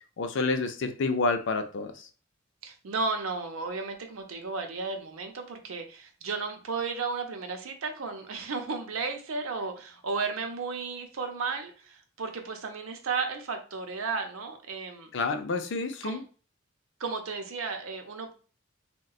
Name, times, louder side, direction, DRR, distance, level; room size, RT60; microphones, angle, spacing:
voice 1, 0.2-2.1 15.1-16.2, left 3 dB, 65° left, 8 dB, 0.4 m, -29 dB
voice 2, 2.6-15.1 16.0-16.2 17.0-18.3, right 4 dB, 85° right, 5 dB, 0.6 m, -34 dB
3.7 x 2.2 x 2.3 m, 0.37 s
head